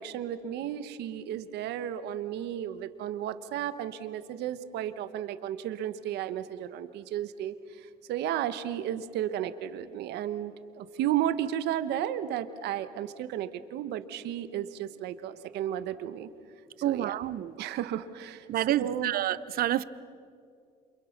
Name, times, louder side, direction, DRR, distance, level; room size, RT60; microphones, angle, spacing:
voice 1, 0.0-16.3 16.8-18.5 18.8-19.1, right 11 dB, 80° right, 11 dB, 1.3 m, -33 dB
voice 2, 16.8-17.5 18.5-19.8, right 12 dB, 60° right, 17 dB, 0.8 m, -28 dB
29.0 x 28.0 x 6.0 m, 2.3 s
cardioid pair, 110°, 17 cm